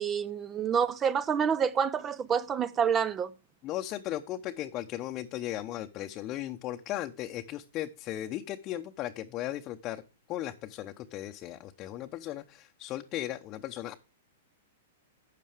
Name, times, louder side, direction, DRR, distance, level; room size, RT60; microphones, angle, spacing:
voice 1, 0.0-3.3, right 7 dB, 25° right, 0.5 m, -28 dB
voice 2, 3.6-10.0 10.3-13.9, left 13 dB, 35° left, 0.7 m, -36 dB
12.5 x 8.3 x 3.5 m
hypercardioid pair, 110°, 0 cm